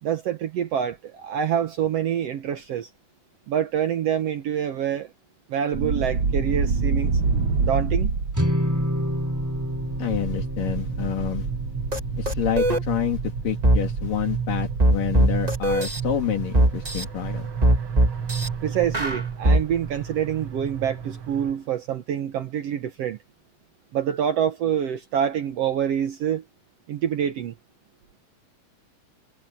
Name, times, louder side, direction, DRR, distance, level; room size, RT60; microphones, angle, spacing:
voice 1, 0.0-2.9 3.5-5.1 5.5-7.2 7.6-8.1 18.6-23.2 23.9-26.4 26.9-27.5, right 9 dB, 65° right, 1.6 m, -26 dB
sound 1, 5.7-21.5, right 5 dB, 45° right, 2.2 m, -29 dB
sound 2, 8.3-14.8, equal, 5° right, 3.0 m, -30 dB
voice 2, 10.0-11.5 12.1-17.5, left 10 dB, 75° left, 4.0 m, -28 dB
sound 3, 11.9-12.0 12.2-12.8 13.6-13.8 14.8-16.0 16.5-17.0 17.6-18.5 18.9-19.6, right 1 dB, 20° right, 1.1 m, -19 dB
omnidirectional pair, 3.9 m